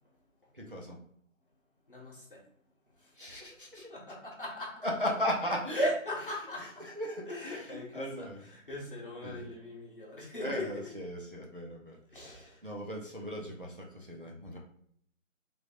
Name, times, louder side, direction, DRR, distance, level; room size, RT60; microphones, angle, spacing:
voice 1, 0.5-1.0 3.1-3.9 4.8-5.9 6.6-8.5 9.2-9.5 10.4-12.0 12.6-14.6, equal, 45° right, -1 dB, 0.5 m, -37 dB
voice 2, 1.9-2.4 3.0-3.3 3.8-4.9 5.7-6.9 7.3-8.3 8.5-10.9 12.1-12.7, equal, 40° left, -2 dB, 0.9 m, -38 dB
3.3 x 2.6 x 2.6 m, 0.64 s
figure-of-eight pair, 160°, 40 cm